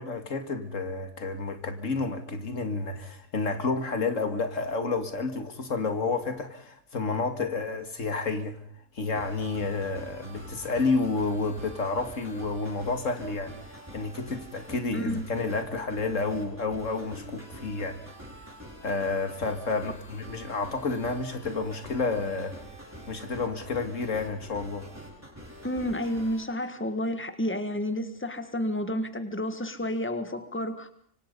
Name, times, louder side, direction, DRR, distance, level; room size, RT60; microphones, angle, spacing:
voice 1, 0.0-8.6 8.9-18.0 18.8-22.6 23.1-24.9, left 3 dB, 90° left, 2.5 m, -30 dB
sound 1, 9.1-26.4, equal, 10° right, 8.1 m, -45 dB
voice 2, 14.9-15.2 25.6-30.9, left 1 dB, 10° left, 1.7 m, -30 dB
25.5 x 25.0 x 5.4 m
omnidirectional pair, 1.3 m